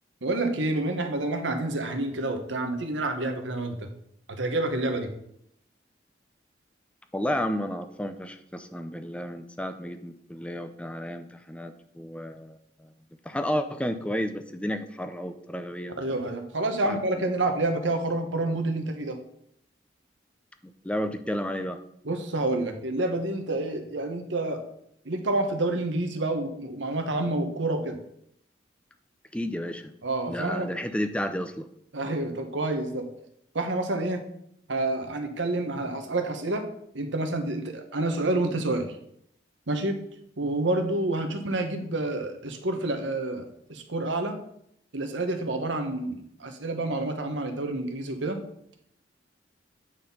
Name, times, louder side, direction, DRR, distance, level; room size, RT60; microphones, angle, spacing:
voice 1, 0.2-3.9 4.3-5.1 16.0-19.2 22.0-24.6 25.0-28.0 30.0-30.7 31.9-33.0 33.5-34.2 34.7-36.7 36.9-39.0 39.7-40.0 40.4-44.4 44.9-48.4, right 2 dB, 90° right, 5 dB, 1.2 m, -28 dB
voice 2, 7.1-12.9 13.3-15.9 16.8-17.0 20.8-21.8 29.3-29.9 30.3-31.7, equal, 5° left, 9 dB, 0.5 m, -32 dB
9.0 x 4.3 x 5.4 m, 0.73 s
head